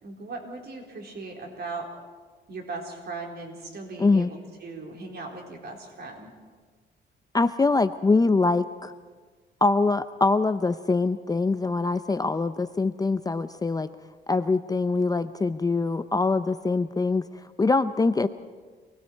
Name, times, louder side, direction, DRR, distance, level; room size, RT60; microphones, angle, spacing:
voice 1, 0.0-1.9 2.5-6.3, right 3 dB, 55° right, 1 dB, 4.2 m, -38 dB
voice 2, 4.0-4.3 7.3-8.9 9.6-13.9 14.3-17.2 17.6-18.3, left 3 dB, 20° left, 11 dB, 0.6 m, -23 dB
29.0 x 19.5 x 4.6 m, 1.5 s
cardioid pair, 90°, 20 cm